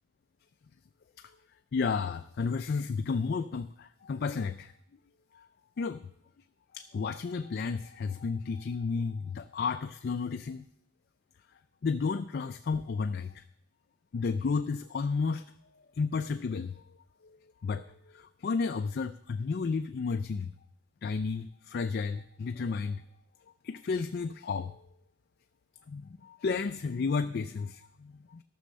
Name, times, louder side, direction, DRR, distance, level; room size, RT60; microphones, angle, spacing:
voice 1, 1.7-4.7 5.8-6.1 6.7-10.6 11.8-13.4 14.1-15.4 16.0-16.8 17.2-17.4 17.6-20.5 21.0-23.0 23.6-24.8 25.9-28.4, left 5 dB, 50° left, 9 dB, 0.3 m, -32 dB
13.5 x 6.2 x 6.6 m, 0.72 s
head